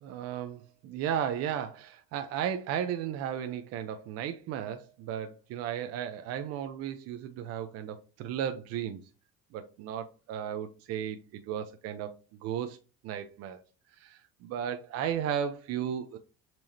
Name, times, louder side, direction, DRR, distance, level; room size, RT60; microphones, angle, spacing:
voice 1, 0.0-9.0 9.5-12.8 13.0-13.6 13.9-16.2, right 9 dB, 55° right, 0.8 m, -35 dB
7.6 x 4.7 x 2.8 m
supercardioid pair, 115°, 29 cm